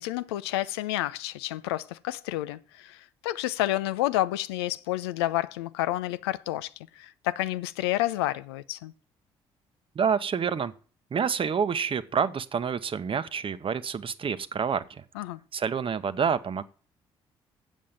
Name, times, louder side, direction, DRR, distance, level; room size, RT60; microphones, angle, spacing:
voice 1, 0.0-8.9 15.2-15.4, left 15 dB, 80° left, 0.4 m, -30 dB
voice 2, 9.9-10.7 11.1-15.0 15.5-16.6, right 6 dB, 40° right, 0.9 m, -28 dB
7.5 x 7.2 x 7.3 m
hypercardioid pair, 45°, 13 cm